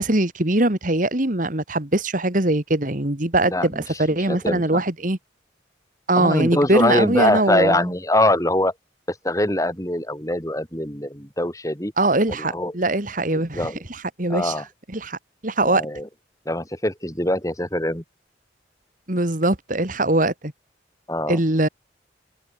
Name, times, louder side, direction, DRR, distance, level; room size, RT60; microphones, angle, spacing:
voice 1, 0.0-5.2 6.1-7.9 12.0-14.5 14.9-15.9 19.1-20.5 21.3-21.7, right 2 dB, 45° right, 2.2 m, -22 dB
voice 2, 3.5-3.8 4.3-4.8 6.2-8.7 9.1-11.9 12.4-12.7 13.3-13.8 14.3-14.6 15.6-16.1 16.5-18.0 21.1-21.4, left 1 dB, 15° left, 6.0 m, -23 dB
head